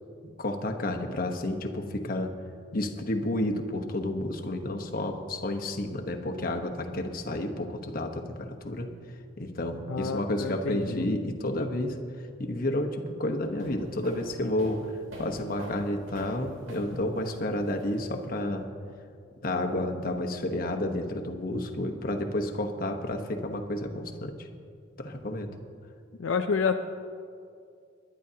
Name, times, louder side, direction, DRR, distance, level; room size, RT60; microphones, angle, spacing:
voice 1, 0.2-2.4 2.7-8.9 9.4-12.0 12.4-18.7 19.4-24.5 25.0-25.5, left 1 dB, 45° left, 3 dB, 1.0 m, -31 dB
voice 2, 9.9-11.1 26.2-26.8, left 5 dB, 75° left, 6 dB, 0.5 m, -29 dB
sound 1, 13.4-18.3, right 1 dB, 85° right, 2.6 m, -45 dB
21.0 x 11.0 x 2.8 m, 2.3 s
head